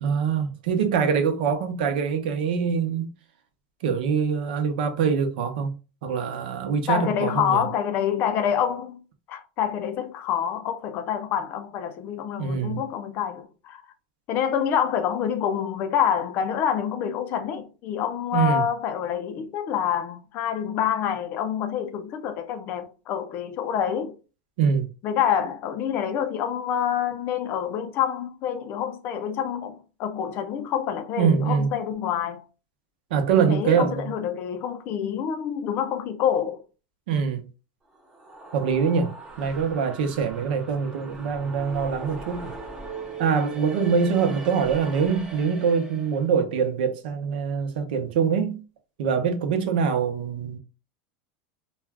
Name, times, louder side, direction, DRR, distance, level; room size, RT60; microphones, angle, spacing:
voice 1, 0.0-3.1 3.8-5.7 6.0-7.7 12.4-12.9 18.3-18.6 24.6-24.9 31.2-31.7 33.1-34.0 37.1-37.4 38.5-39.1 39.4-42.5 43.2-48.6 49.0-50.6, right 6 dB, 75° right, 0.8 m, -24 dB
voice 2, 6.9-9.0 9.3-13.8 14.3-24.1 25.0-32.4 33.3-36.6, left 9 dB, 40° left, 0.5 m, -27 dB
sound 1, 37.9-46.2, right 3 dB, 10° right, 0.7 m, -40 dB
2.5 x 2.3 x 3.3 m
supercardioid pair, 155°, 5 cm